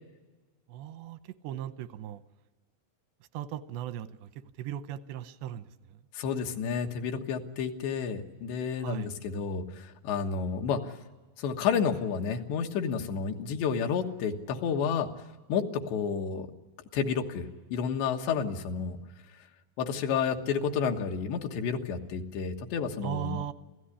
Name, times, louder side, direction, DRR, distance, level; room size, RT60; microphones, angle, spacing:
voice 1, 0.7-2.2 3.3-6.0 8.8-9.1 23.0-23.5, right 11 dB, 90° right, 13 dB, 3.1 m, -38 dB
voice 2, 6.1-11.0 11.4-15.1 15.5-16.5 16.9-19.0 19.8-23.4, left 6 dB, 85° left, 3 dB, 3.7 m, -30 dB
28.0 x 16.5 x 10.0 m, 1.3 s
omnidirectional pair, 4.9 m